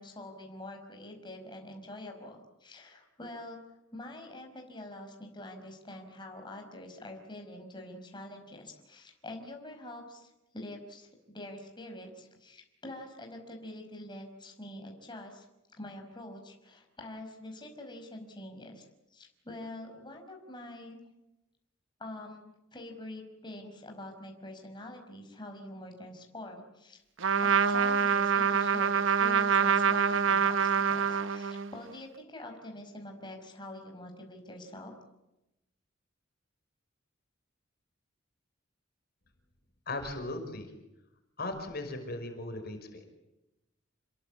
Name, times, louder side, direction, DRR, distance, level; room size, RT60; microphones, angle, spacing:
voice 1, 0.0-15.5 15.7-21.0 22.0-27.0 27.4-34.9, left 1 dB, 25° left, 3 dB, 5.2 m, -45 dB
Trumpet, 27.2-31.8, right 6 dB, 80° right, 1.0 m, -26 dB
voice 2, 39.9-40.7 41.4-43.1, left 2 dB, 55° left, 5 dB, 5.6 m, -37 dB
29.0 x 22.0 x 8.6 m, 0.92 s
head